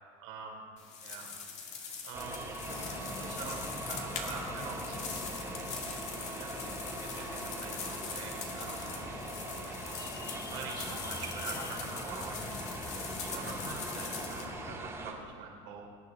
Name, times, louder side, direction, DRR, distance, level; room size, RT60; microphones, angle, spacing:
voice 1, 0.2-0.6 1.0-1.3 1.5-2.4 3.3-5.5 5.8-6.7 7.0-9.1 9.6-12.7 13.2-15.8, right 6 dB, 75° right, 0 dB, 3.4 m, -45 dB
sound 1, 0.8-14.4, left 5 dB, 45° left, 2.1 m, -43 dB
sound 2, 2.1-15.1, right 2 dB, 15° right, 2.7 m, -42 dB
sound 3, 2.7-14.8, left 4 dB, 20° left, 0.7 m, -45 dB
22.0 x 9.5 x 4.0 m, 2.1 s
supercardioid pair, 125°, 16 cm